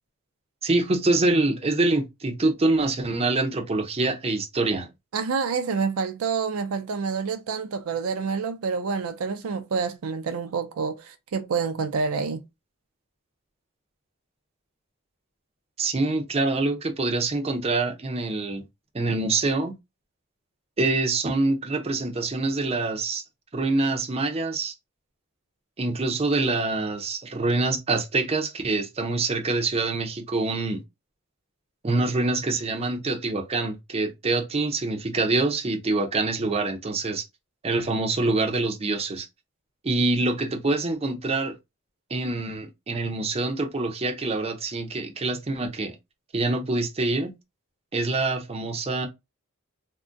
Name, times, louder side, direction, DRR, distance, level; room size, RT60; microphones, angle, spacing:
voice 1, 0.6-4.9 15.8-18.6 18.9-19.7 20.8-23.2 23.5-24.7 25.8-30.8 31.8-37.2 37.6-39.3 39.8-41.5 42.1-45.9 46.3-47.3 47.9-49.1, right 2 dB, 30° right, 0.6 m, -25 dB
voice 2, 5.1-12.4, right 5 dB, 75° right, 0.4 m, -28 dB
3.6 x 2.1 x 2.5 m
head